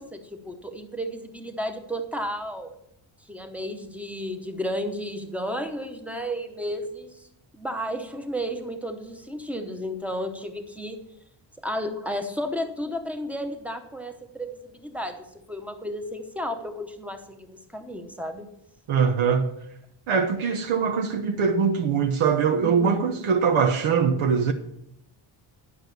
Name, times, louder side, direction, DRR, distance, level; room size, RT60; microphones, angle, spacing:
voice 1, 0.0-2.7 3.3-7.3 7.5-11.0 11.6-18.5 22.6-23.1, equal, 5° right, 0.9 m, -33 dB
voice 2, 18.9-19.5 20.1-24.5, right 6 dB, 85° right, 1.1 m, -22 dB
11.5 x 6.3 x 6.8 m
wide cardioid pair, 180°, 48 cm